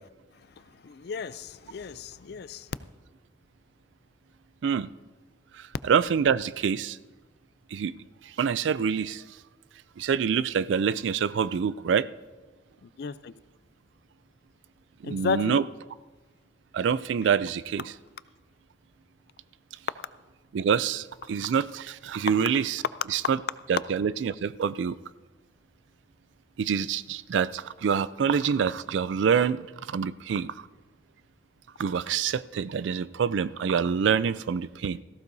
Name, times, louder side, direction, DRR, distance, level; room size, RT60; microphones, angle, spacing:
voice 1, 0.8-2.7 12.8-13.3 15.0-15.6, left 4 dB, 60° left, 0.4 m, -33 dB
voice 2, 5.6-7.0 7.7-7.9 8.4-9.2 10.0-12.1 15.0-15.6 16.7-17.9 20.5-22.8 23.1-23.4 23.7-25.0 26.6-29.6 29.9-30.7 31.8-35.0, right 7 dB, 80° right, 0.3 m, -26 dB
17.5 x 15.0 x 2.7 m
head